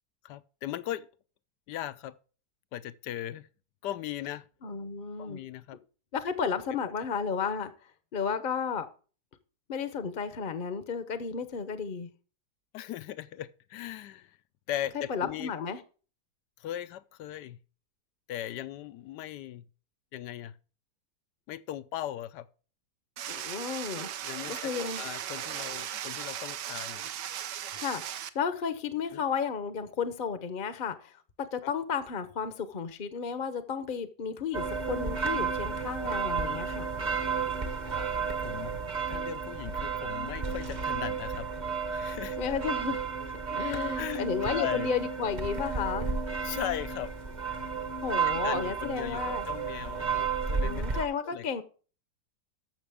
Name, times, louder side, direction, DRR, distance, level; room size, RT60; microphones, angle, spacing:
voice 1, 0.2-1.1 1.7-2.1 2.7-3.5 3.8-4.5 5.2-5.8 12.7-14.4 14.7-15.5 16.6-17.6 18.3-19.7 20.1-20.6 21.5-22.5 24.2-27.1 29.1-29.2 31.6-31.7 38.4-38.7 39.1-41.5 41.9-42.4 43.7-44.9 46.4-47.1 48.3-50.9 51.2-51.5, left 12 dB, 80° left, 1.3 m, -38 dB
voice 2, 4.6-5.4 6.1-7.7 8.1-8.9 9.7-12.1 15.1-15.8 23.3-24.1 24.5-25.0 27.7-28.0 28.3-36.9 42.4-43.0 43.5-46.2 48.0-49.4 50.6-51.6, left 6 dB, 40° left, 0.8 m, -33 dB
sound 1, 23.2-28.3, right 10 dB, 80° right, 1.4 m, -37 dB
sound 2, 34.5-51.1, right 5 dB, 35° right, 0.9 m, -32 dB
14.0 x 6.2 x 3.5 m
omnidirectional pair, 1.8 m